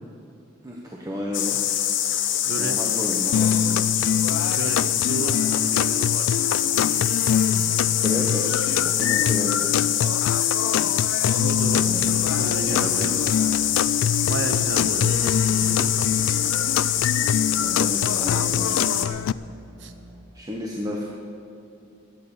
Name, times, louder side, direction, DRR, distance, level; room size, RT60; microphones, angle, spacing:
voice 1, 0.6-1.6 2.6-3.9 8.0-9.8 11.8-12.2 12.7-13.2 13.9-14.1 17.6-18.8 20.3-21.0, equal, 20° right, -2 dB, 1.1 m, -32 dB
sound 1, 1.3-19.1, left 10 dB, 65° left, 0.9 m, -24 dB
voice 2, 2.4-2.8 4.4-6.6 11.3-13.2 13.5-13.6 14.2-15.3 15.7-16.2 18.6-19.0 19.8-19.9, right 2 dB, 65° right, 8 dB, 0.9 m, -33 dB
sound 2, 3.3-19.3, left 8 dB, 90° left, 0.3 m, -25 dB
sound 3, 11.4-20.2, right 1 dB, 10° left, 3.0 m, -48 dB
12.5 x 9.4 x 7.0 m, 2.6 s
head